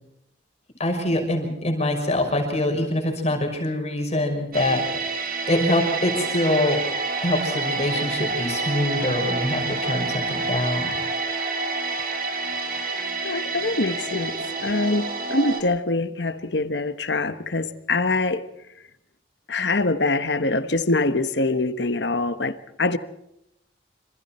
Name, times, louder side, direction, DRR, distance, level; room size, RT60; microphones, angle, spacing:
voice 1, 0.8-4.8 5.5-6.8 7.2-11.0, left 1 dB, 40° left, 5.8 m, -24 dB
sound 1, 4.5-15.6, right 3 dB, 55° right, 3.4 m, -28 dB
voice 2, 13.2-18.5 19.5-23.0, left 2 dB, 70° left, 1.3 m, -24 dB
27.0 x 26.5 x 4.4 m
head